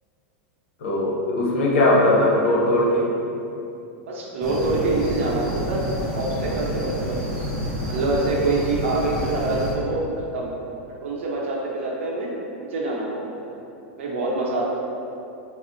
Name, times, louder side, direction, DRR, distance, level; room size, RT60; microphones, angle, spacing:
voice 1, 0.8-3.1, left 1 dB, 75° left, -3 dB, 0.7 m, -19 dB
voice 2, 4.1-7.2 7.8-10.5 10.9-12.3 12.6-13.2 13.5-13.6 14.0-14.6, right 2 dB, 75° right, -4 dB, 0.7 m, -25 dB
sound 1, 4.4-9.7, equal, 5° left, 0.5 m, -29 dB
4.2 x 2.0 x 2.6 m, 2.7 s
supercardioid pair, 160°, 7 cm